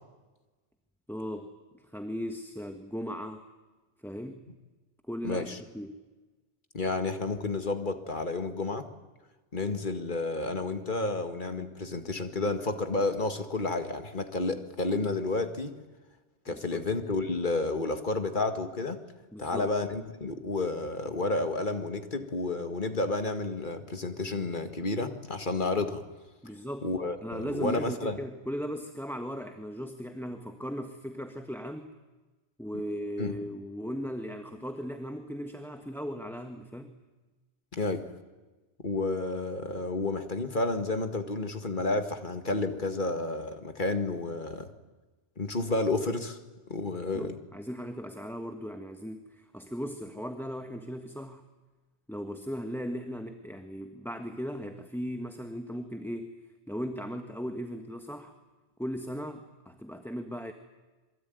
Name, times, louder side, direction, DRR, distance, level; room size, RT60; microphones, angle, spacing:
voice 1, 1.1-1.5 1.8-3.4 4.0-4.4 5.1-5.5 5.7-6.0 16.5-16.8 19.3-19.7 26.4-26.9 27.2-31.9 32.6-37.0 47.1-51.4 52.1-56.4 56.7-58.3 58.8-60.5, equal, ahead, 6 dB, 1.3 m, -37 dB
voice 2, 5.2-5.6 6.7-8.9 9.5-15.7 16.5-19.0 19.4-26.0 26.8-28.2 33.2-33.3 37.7-38.0 38.8-44.7 45.4-46.4 46.7-47.4, left 2 dB, 45° left, 7 dB, 2.0 m, -31 dB
26.5 x 23.5 x 9.4 m, 1.2 s
omnidirectional pair, 1.1 m